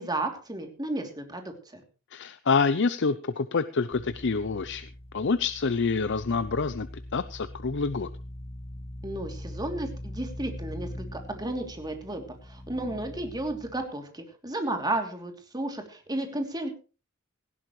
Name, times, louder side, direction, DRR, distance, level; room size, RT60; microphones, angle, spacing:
voice 1, 0.0-1.8 9.0-16.7, right 2 dB, 20° right, 4 dB, 3.0 m, -33 dB
voice 2, 2.1-4.9 5.1-6.9 7.1-8.1, left 4 dB, 55° left, 13 dB, 0.6 m, -27 dB
sound 1, 3.9-13.8, left 1 dB, 30° left, 1.3 m, -42 dB
18.0 x 15.5 x 3.2 m, 0.34 s
head